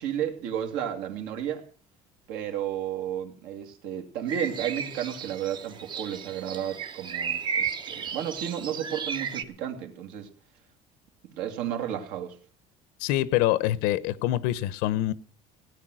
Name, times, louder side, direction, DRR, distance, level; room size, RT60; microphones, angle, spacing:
voice 1, 0.0-1.6 2.3-10.3 11.2-12.4, right 10 dB, 70° right, 2.6 m, -32 dB
sound 1, 4.3-9.4, right 6 dB, 30° right, 0.9 m, -34 dB
voice 2, 13.0-15.1, left 14 dB, 75° left, 0.9 m, -25 dB
16.5 x 9.6 x 6.2 m
cardioid pair, 170°, 15 cm